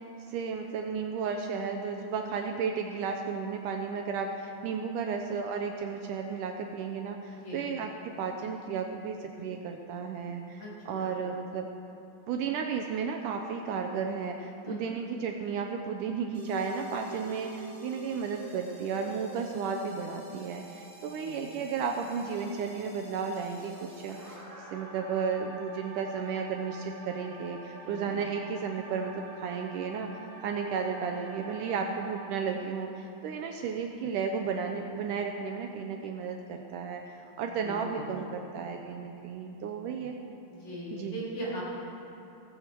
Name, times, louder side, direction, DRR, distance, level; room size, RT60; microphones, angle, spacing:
voice 1, 0.3-11.7 12.3-24.4 24.7-30.1 30.4-40.2 40.9-41.2, right 6 dB, 80° right, 3 dB, 2.0 m, -33 dB
voice 2, 10.6-11.1 14.6-14.9 21.2-21.5 27.8-28.1 37.6-38.1 40.5-41.6, equal, 50° left, -7 dB, 4.7 m, -39 dB
sound 1, 16.3-32.3, right 2 dB, 15° right, 3.4 m, -47 dB
16.0 x 15.0 x 4.5 m, 2.8 s
omnidirectional pair, 4.1 m